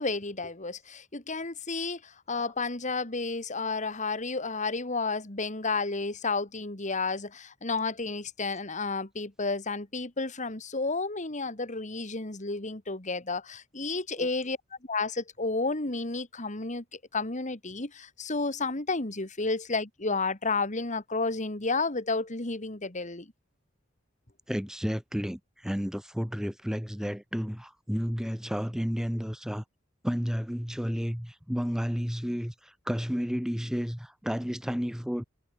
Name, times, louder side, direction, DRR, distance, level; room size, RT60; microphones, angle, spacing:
voice 1, 0.0-14.6 14.9-23.3, left 3 dB, 40° left, 2.5 m, -31 dB
voice 2, 24.5-29.6 30.0-35.2, equal, 5° right, 1.2 m, -32 dB
head